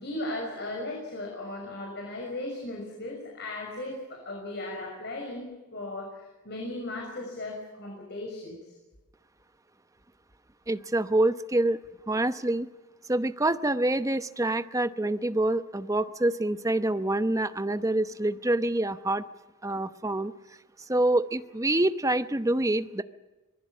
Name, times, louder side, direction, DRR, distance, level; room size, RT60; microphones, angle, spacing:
voice 1, 0.0-8.6, left 2 dB, 55° left, 0 dB, 6.2 m, -37 dB
voice 2, 10.7-11.8 12.1-12.7 13.1-19.2 19.6-20.3 20.9-23.0, right 1 dB, 15° right, 11 dB, 0.8 m, -26 dB
26.0 x 20.0 x 7.4 m, 1.2 s
head